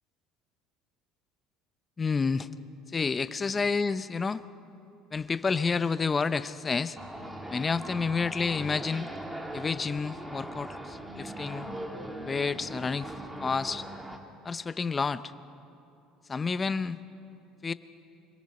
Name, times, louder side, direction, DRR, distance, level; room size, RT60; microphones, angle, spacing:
voice 1, 2.0-2.5 2.9-4.4 5.1-7.0 7.5-9.1 9.5-11.7 12.2-13.1 13.4-13.9 14.4-15.3 16.3-17.0 17.6-17.7, left 4 dB, 20° left, 14 dB, 0.6 m, -29 dB
sound 1, 7.0-14.2, right 1 dB, 10° right, 1.5 m, -40 dB
25.5 x 18.5 x 5.4 m, 2.7 s
cardioid pair, 130°, 0 cm